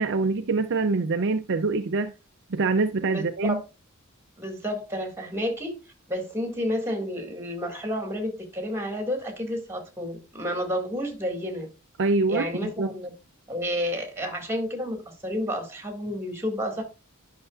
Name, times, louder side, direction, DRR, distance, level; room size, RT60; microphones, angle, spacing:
voice 1, 0.0-2.1 2.5-3.6 12.0-12.9, right 3 dB, 55° right, 0.5 m, -25 dB
voice 2, 3.1-3.6 4.4-5.7 6.1-11.7 12.3-13.1 13.5-16.8, equal, 10° right, 2.1 m, -30 dB
11.0 x 6.0 x 2.5 m
head